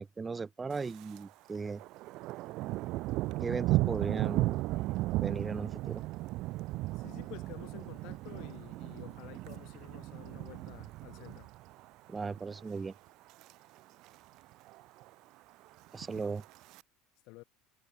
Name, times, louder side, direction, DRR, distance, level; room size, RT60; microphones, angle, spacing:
voice 1, 0.0-1.8 3.4-4.6 5.2-6.0 12.1-12.9 15.9-16.4, right 4 dB, 20° right, 2.2 m, -37 dB
Thunder, 0.7-1.2 1.5-11.9 12.3-12.6 13.1-13.5 13.8-13.9 14.0-14.1 14.5-15.1 15.9-16.8, right 19 dB, 60° right, 0.6 m, -35 dB
voice 2, 6.9-11.5 17.2-17.4, left 23 dB, 65° left, 6.4 m, -51 dB
hypercardioid pair, 85°, 0 cm